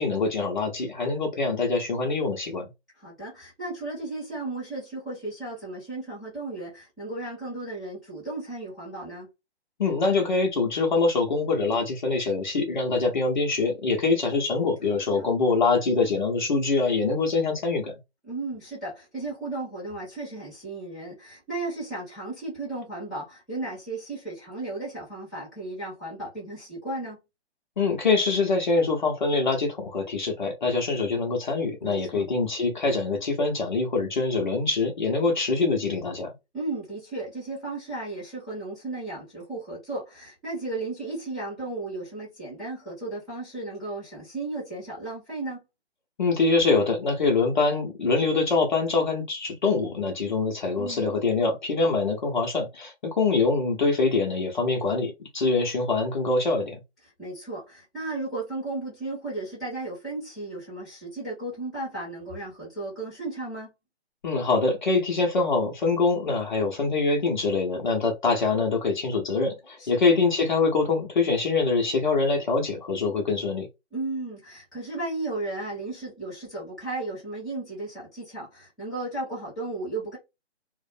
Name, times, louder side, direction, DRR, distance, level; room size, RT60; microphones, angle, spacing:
voice 1, 0.0-2.7 9.8-17.9 27.8-36.3 46.2-56.8 64.2-73.7, left 3 dB, 45° left, 0.7 m, -24 dB
voice 2, 3.0-9.3 14.9-15.3 18.3-27.2 31.8-32.2 36.5-45.6 50.7-51.2 57.2-63.7 69.8-69.9 73.9-80.2, right 2 dB, ahead, 0.8 m, -35 dB
2.5 x 2.1 x 2.5 m
hypercardioid pair, 160°, 33 cm